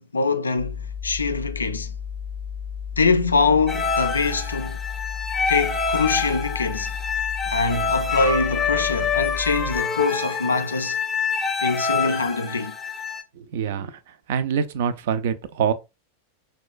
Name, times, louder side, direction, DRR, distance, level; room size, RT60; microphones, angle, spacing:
voice 1, 0.0-1.9 3.0-4.8 5.5-6.9 7.5-11.0 11.6-12.7, left 4 dB, 75° left, 0.3 m, -23 dB
sound 1, 0.6-9.8, left 7 dB, 85° right, 1.2 m, -33 dB
sound 2, 3.7-13.2, left 5 dB, 15° left, 0.5 m, -26 dB
voice 2, 13.4-14.0 14.3-15.7, right 7 dB, 55° right, 0.3 m, -25 dB
4.2 x 2.2 x 2.3 m
figure-of-eight pair, 90°, 0 cm